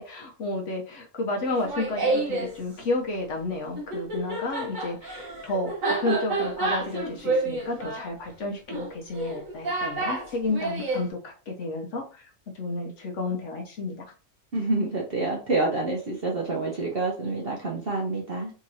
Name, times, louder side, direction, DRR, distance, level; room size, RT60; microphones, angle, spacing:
voice 1, 0.0-5.7 6.0-12.3 12.5-13.9, left 2 dB, 65° left, 1 dB, 1.0 m, -31 dB
Laughter, 1.5-2.5 3.8-11.1, right 2 dB, 65° right, 1.4 m, -29 dB
voice 2, 14.5-18.5, right 2 dB, 50° right, -3 dB, 0.9 m, -27 dB
3.7 x 2.9 x 2.6 m, 0.36 s
omnidirectional pair, 1.5 m